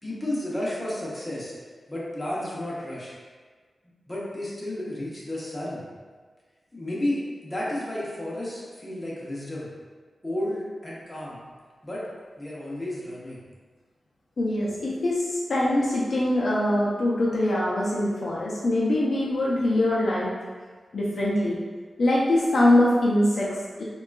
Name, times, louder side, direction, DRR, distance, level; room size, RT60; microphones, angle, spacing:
voice 1, 0.0-1.5 1.9-3.2 4.1-5.8 6.7-9.7 10.2-11.4 11.8-12.0 12.4-13.4, left 1 dB, 15° left, -7 dB, 0.7 m, -32 dB
voice 2, 14.4-20.3 20.9-21.6 22.0-23.8, left 1 dB, 60° left, -5 dB, 0.4 m, -23 dB
3.6 x 2.2 x 2.3 m, 1.5 s
wide cardioid pair, 115°, 0 cm